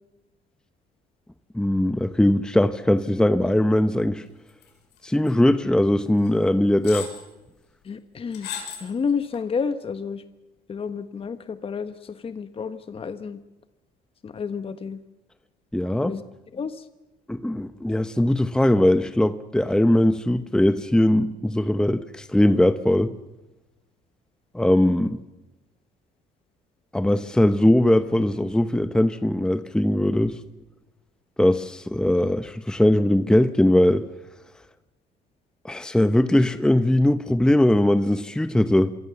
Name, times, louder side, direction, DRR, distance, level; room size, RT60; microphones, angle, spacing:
voice 1, 1.5-4.2 5.0-7.1 15.7-16.2 17.3-23.1 24.5-25.2 26.9-30.4 31.4-34.0 35.6-38.9, left 1 dB, 5° left, 11 dB, 0.9 m, -20 dB
sound 1, 4.6-5.0 5.3-5.4 6.3-6.4 6.8-7.2 8.3-8.9 9.3-9.4, left 8 dB, 80° left, 7.4 m, -35 dB
voice 2, 7.9-8.5 8.8-10.2 10.7-13.4 14.2-15.0 16.0-16.2 16.5-16.7, left 6 dB, 35° left, 10 dB, 1.3 m, -30 dB
27.0 x 24.0 x 7.1 m, 1.1 s
cardioid pair, 110°, 17 cm